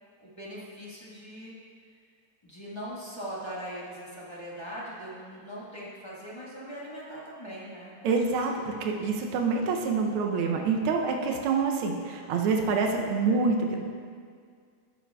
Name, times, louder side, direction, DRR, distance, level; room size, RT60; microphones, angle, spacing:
voice 1, 0.2-1.5 2.4-8.1 8.5-8.6 9.1-9.2, equal, 15° left, -7 dB, 1.3 m, -40 dB
voice 2, 8.0-13.8, right 4 dB, 85° right, 2 dB, 1.6 m, -26 dB
12.0 x 9.0 x 2.3 m, 2.1 s
omnidirectional pair, 2.3 m